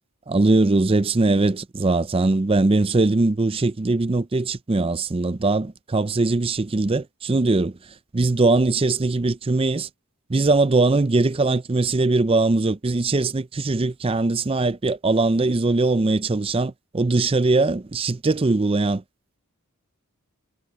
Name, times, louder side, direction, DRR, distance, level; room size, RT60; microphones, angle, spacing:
voice 1, 0.3-7.7 8.1-9.9 10.3-19.0, right 3 dB, 25° right, 0.5 m, -21 dB
head